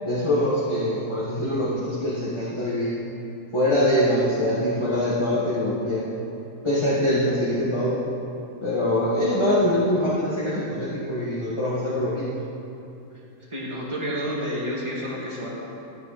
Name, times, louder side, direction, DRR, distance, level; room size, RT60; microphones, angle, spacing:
voice 1, 0.0-3.0 3.5-6.1 6.6-8.0 8.6-12.4, left 1 dB, 20° left, -11 dB, 1.7 m, -23 dB
voice 2, 13.5-15.5, equal, 20° right, -6 dB, 2.2 m, -29 dB
13.0 x 9.2 x 4.2 m, 2.8 s
omnidirectional pair, 1.6 m